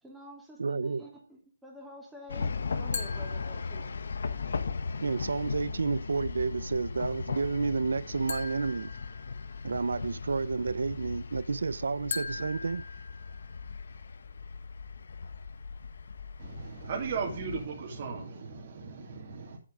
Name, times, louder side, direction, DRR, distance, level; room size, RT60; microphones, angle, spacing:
voice 1, 0.0-3.9, equal, 5° right, 2.7 m, -48 dB
voice 2, 0.6-1.0 5.0-8.9 9.6-12.8, right 4 dB, 90° right, 0.4 m, -30 dB
sound 1, 2.3-17.7, left 4 dB, 75° left, 1.0 m, -38 dB
sound 2, 2.9-4.2 8.3-9.8 12.1-13.8, left 5 dB, 55° left, 1.2 m, -41 dB
voice 3, 16.4-19.6, right 5 dB, 40° right, 2.4 m, -36 dB
8.0 x 7.2 x 5.1 m
hypercardioid pair, 165°, 0 cm